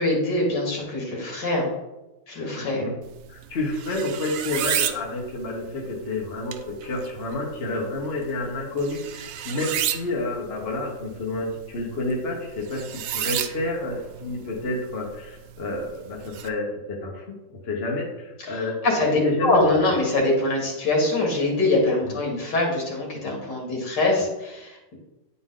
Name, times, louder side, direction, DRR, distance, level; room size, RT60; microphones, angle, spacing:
voice 1, 0.0-1.7 2.3-2.8 18.4-24.9, left 2 dB, 65° left, -1 dB, 2.5 m, -23 dB
voice 2, 2.6-2.9 3.3-17.3 17.6-18.8 19.2-19.8 22.0-22.1, left 2 dB, 35° left, -1 dB, 1.3 m, -29 dB
sound 1, 3.0-16.5, right 10 dB, 90° right, 0.7 m, -34 dB
10.5 x 4.3 x 3.8 m, 1.0 s
omnidirectional pair, 2.0 m